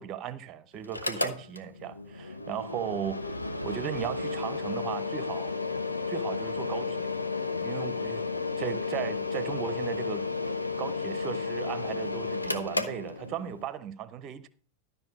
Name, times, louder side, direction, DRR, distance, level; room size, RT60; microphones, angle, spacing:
voice 1, 0.0-3.4 3.6-5.5 6.1-7.1 7.6-8.2 8.6-14.5, right 9 dB, 30° right, 0.8 m, -37 dB
Mechanical fan, 0.8-13.7, left 4 dB, 85° left, 0.8 m, -33 dB
12.5 x 5.6 x 5.9 m
figure-of-eight pair, 90°, 0 cm